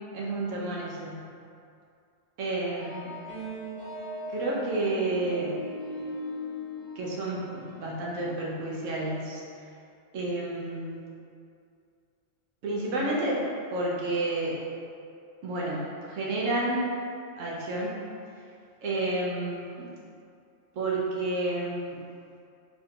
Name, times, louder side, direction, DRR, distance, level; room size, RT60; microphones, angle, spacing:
voice 1, 0.1-1.3 2.4-3.1 4.3-5.6 6.9-9.4 10.1-11.0 12.6-14.6 15.4-16.8 17.4-17.9 18.8-19.9 20.7-22.0, right 2 dB, 90° right, -4 dB, 1.1 m, -30 dB
sound 1, 2.8-8.0, left 1 dB, 65° right, 1.5 m, -39 dB
3.2 x 2.5 x 4.3 m, 2.4 s
omnidirectional pair, 1.3 m